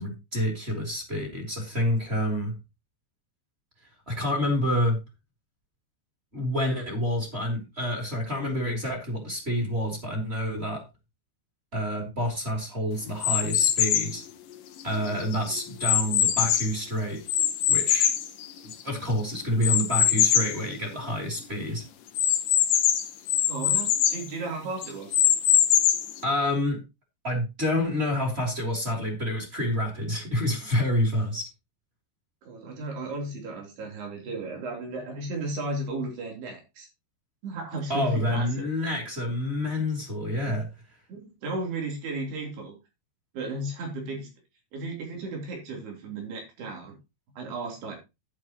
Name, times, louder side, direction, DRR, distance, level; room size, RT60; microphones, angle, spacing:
voice 1, 0.0-2.5 4.1-5.0 6.3-10.8 11.7-14.2 14.8-17.2 17.7-18.1 18.6-21.8 26.2-26.8 27.2-31.5 37.9-40.6, left 1 dB, 15° right, 0 dB, 3.1 m, -28 dB
sound 1, 13.2-14.2 14.8-16.8 17.3-19.0 19.6-20.6 21.0-21.1 21.4-21.5 22.2-24.2 24.8-26.2, left 10 dB, 70° left, 2.4 m, -23 dB
voice 2, 23.5-25.2 32.5-36.9 37.4-38.7 41.1-42.8 43.3-44.3 44.7-47.0 47.4-48.0, right 2 dB, 80° right, 1 dB, 5.6 m, -34 dB
10.5 x 9.8 x 3.1 m, 0.24 s
omnidirectional pair, 4.6 m